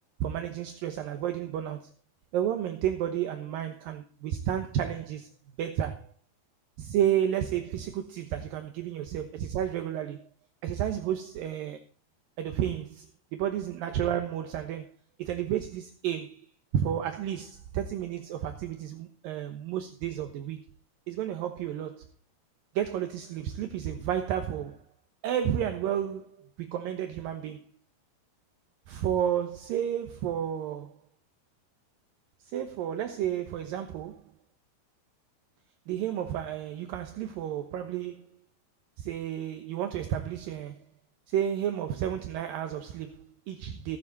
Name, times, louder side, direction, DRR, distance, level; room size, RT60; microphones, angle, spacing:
voice 1, 0.2-1.9 2.3-5.3 5.6-6.1 6.8-10.3 10.6-11.8 12.4-14.9 15.2-20.6 21.1-22.1 22.7-24.8 25.2-27.7 28.9-31.0 32.4-34.2 35.9-38.3 39.0-40.9 41.3-44.0, right 10 dB, 70° right, 2.6 m, -31 dB
17.0 x 12.0 x 4.1 m
omnidirectional pair, 4.8 m